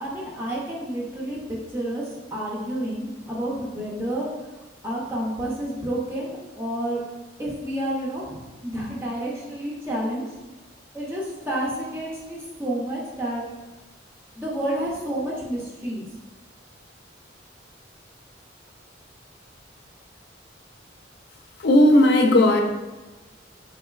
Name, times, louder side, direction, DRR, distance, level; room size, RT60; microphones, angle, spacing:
voice 1, 0.0-4.3 4.8-7.0 7.4-10.3 10.9-13.4 14.4-16.1, right 1 dB, 15° right, -5 dB, 0.5 m, -30 dB
voice 2, 21.6-22.6, left 1 dB, 60° left, 3 dB, 0.4 m, -15 dB
3.8 x 2.9 x 2.3 m, 1.2 s
head